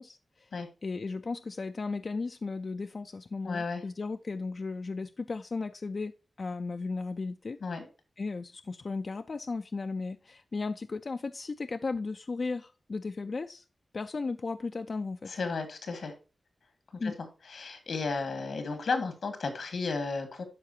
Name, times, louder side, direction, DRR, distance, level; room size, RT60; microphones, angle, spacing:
voice 1, 0.0-0.5 0.8-6.1 6.4-7.6 8.2-13.6 13.9-15.3 17.0-17.1, left 3 dB, 55° left, 0.3 m, -35 dB
voice 2, 3.4-3.8 7.6-7.9 15.3-16.1 17.0-17.1 17.5-20.4, left 4 dB, 90° left, 1.7 m, -33 dB
12.0 x 4.5 x 2.7 m
wide cardioid pair, 75°, 0 cm